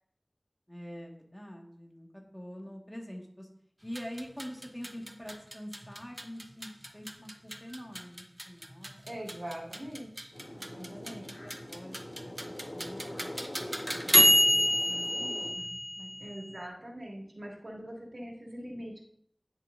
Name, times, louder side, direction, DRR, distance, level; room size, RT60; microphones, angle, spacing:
voice 1, 0.7-2.1 2.3-3.5 3.8-9.2 10.8-12.0 12.2-16.2, equal, 20° left, 0 dB, 1.9 m, -46 dB
sound 1, 3.8-16.6, equal, 20° right, 0.8 m, -30 dB
voice 2, 9.1-10.3 10.6-11.3 16.2-19.0, equal, 75° right, -3 dB, 2.3 m, -42 dB
sound 2, 10.3-15.5, left 1 dB, 80° left, 1.5 m, -44 dB
9.7 x 7.0 x 2.7 m, 0.66 s
wide cardioid pair, 40°, 0 cm